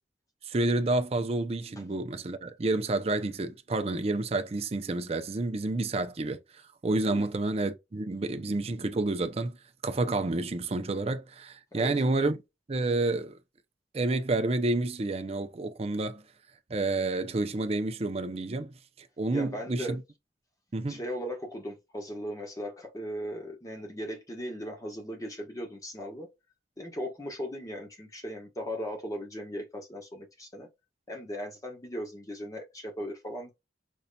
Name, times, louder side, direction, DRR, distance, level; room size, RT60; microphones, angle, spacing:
voice 1, 0.5-6.4 6.8-9.6 9.8-12.4 12.7-13.4 13.9-16.2 16.7-18.7 19.2-20.0 20.7-21.0, right 2 dB, 35° right, 0.5 m, -29 dB
voice 2, 19.3-20.0 20.9-26.3 26.8-30.7 31.1-33.5, equal, 20° left, 1.1 m, -38 dB
5.3 x 2.7 x 2.2 m
head